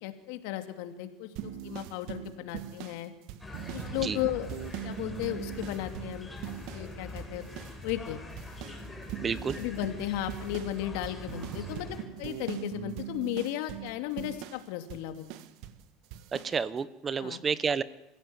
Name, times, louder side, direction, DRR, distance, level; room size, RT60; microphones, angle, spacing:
voice 1, 0.0-3.1 3.7-4.5 4.8-6.3 6.7-7.4 7.8-8.2 9.6-15.3 17.2-17.4, left 13 dB, 80° left, 8 dB, 2.6 m, -35 dB
sound 1, 1.4-6.9 7.2-8.1 8.4-15.8 16.1-16.6, right 11 dB, 70° right, 1.6 m, -41 dB
sound 2, 3.4-12.0, left 2 dB, 10° left, 4.9 m, -43 dB
voice 2, 9.2-9.6 16.3-17.8, right 6 dB, 25° right, 17 dB, 1.0 m, -30 dB
26.5 x 16.5 x 9.6 m, 0.92 s
supercardioid pair, 130°, 0 cm